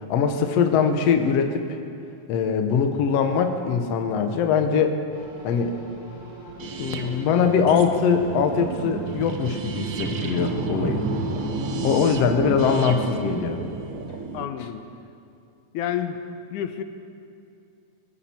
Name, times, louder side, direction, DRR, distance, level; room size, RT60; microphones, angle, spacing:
voice 1, 0.1-1.6 2.3-5.0 5.4-5.7 6.8-11.0 11.8-13.6, left 6 dB, 65° left, 6 dB, 1.9 m, -22 dB
sound 1, 5.1-11.7, right 1 dB, 45° left, 4.9 m, -42 dB
sound 2, 6.6-14.4, right 6 dB, 70° right, 1.3 m, -34 dB
sound 3, 9.4-14.4, right 1 dB, 40° right, 1.4 m, -31 dB
voice 2, 14.3-14.8 15.7-16.2 16.5-16.8, left 10 dB, 85° left, 9 dB, 2.3 m, -29 dB
23.0 x 14.0 x 4.4 m, 2.5 s
omnidirectional pair, 3.5 m